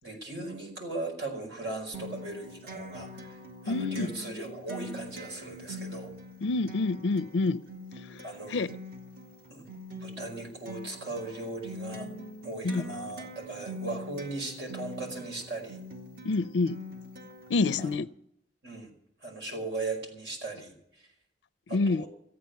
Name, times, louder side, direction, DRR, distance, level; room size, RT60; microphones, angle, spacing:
voice 1, 0.0-6.1 8.2-8.7 9.5-9.6 10.0-12.1 12.4-15.8 17.8-17.9 18.6-18.9 19.2-21.1 21.7-22.1, right 2 dB, 90° right, 5.0 m, -38 dB
Acoustic guitar, 1.9-17.9, left 1 dB, 60° right, 2.0 m, -43 dB
voice 2, 3.7-4.1 6.4-7.6 8.1-8.2 8.5-8.8 12.6-12.8 16.2-16.8 17.5-18.1 21.7-22.0, left 3 dB, 80° left, 0.5 m, -27 dB
14.5 x 8.9 x 9.3 m
head